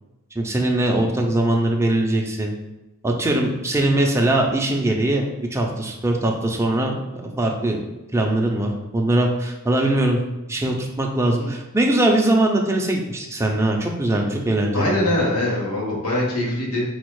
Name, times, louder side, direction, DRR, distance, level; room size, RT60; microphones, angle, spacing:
voice 1, 0.3-2.5 3.0-5.3 5.5-7.8 8.1-10.2 10.5-15.0, right 1 dB, 15° right, 0 dB, 0.5 m, -21 dB
voice 2, 14.7-16.8, left 1 dB, 85° left, -3 dB, 1.3 m, -23 dB
4.2 x 2.4 x 4.6 m, 0.98 s
head